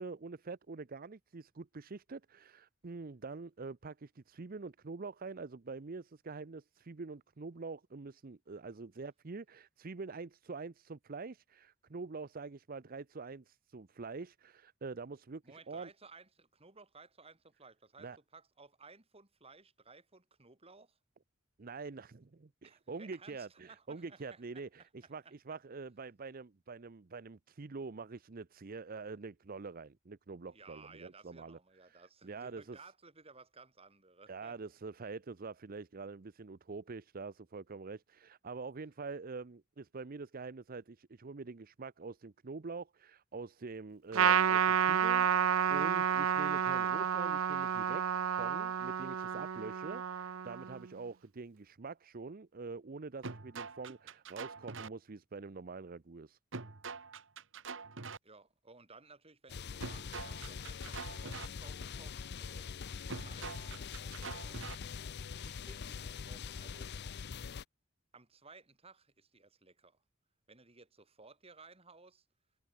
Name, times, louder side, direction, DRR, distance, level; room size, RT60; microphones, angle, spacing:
voice 1, 0.0-15.9 18.0-18.2 21.6-31.6 31.9-32.8 34.3-48.0 48.4-56.4, right 4 dB, 45° right, 0.6 m, -45 dB
voice 2, 15.4-21.0 22.6-25.3 30.5-34.6 58.2-62.7 63.0-64.6 65.4-66.9 68.1-70.0 70.5-72.2, right 4 dB, 30° right, 3.9 m, -58 dB
Trumpet, 44.1-50.8, right 8 dB, 85° right, 0.5 m, -30 dB
sound 1, 53.2-54.9 56.5-58.2 59.8-61.5 63.1-64.8, right 4 dB, 65° right, 1.5 m, -44 dB
sound 2, 59.5-67.6, left 6 dB, 55° left, 0.5 m, -43 dB
head